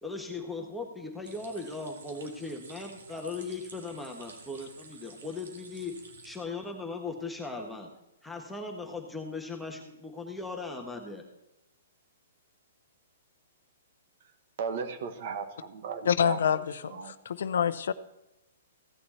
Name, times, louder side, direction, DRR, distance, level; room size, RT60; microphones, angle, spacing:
voice 1, 0.0-5.9 6.2-7.9 8.2-11.2, left 3 dB, 5° left, 0 dB, 1.4 m, -38 dB
sound 1, 1.2-6.4, right 3 dB, 75° right, 2.0 m, -51 dB
voice 2, 14.6-16.4 16.9-17.1, right 5 dB, 55° right, 9 dB, 1.4 m, -36 dB
voice 3, 16.0-17.9, left 8 dB, 75° left, 14 dB, 0.6 m, -27 dB
15.5 x 6.7 x 4.3 m, 0.96 s
hypercardioid pair, 135°, 0 cm